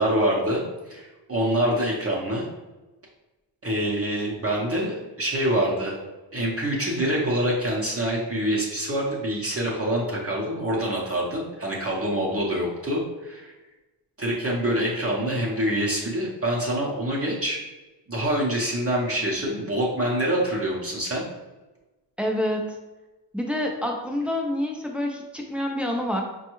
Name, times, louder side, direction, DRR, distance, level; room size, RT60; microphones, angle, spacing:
voice 1, 0.0-2.5 3.6-6.0 6.3-13.5 14.2-17.6 18.1-21.2, right 1 dB, 30° right, -4 dB, 0.7 m, -25 dB
voice 2, 22.2-22.8 23.3-26.2, left 1 dB, 5° right, 0 dB, 0.5 m, -27 dB
5.1 x 2.3 x 3.0 m, 1.1 s
wide cardioid pair, 135°, 46 cm